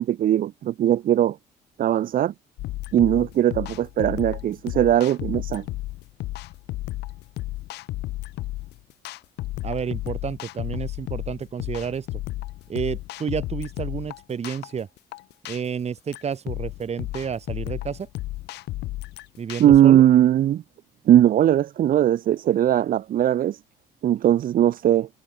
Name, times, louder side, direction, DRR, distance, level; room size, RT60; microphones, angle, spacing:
voice 1, 0.0-1.4 1.8-2.3 2.9-5.6 19.6-20.6 21.1-23.6 24.0-25.1, right 11 dB, 55° right, 1.3 m, -19 dB
sound 1, 2.6-19.8, left 17 dB, 80° left, 1.5 m, -33 dB
voice 2, 9.6-12.1 12.7-14.9 15.5-18.1 19.4-20.0, right 7 dB, 40° right, 6.9 m, -30 dB
cardioid pair, 110°, 17 cm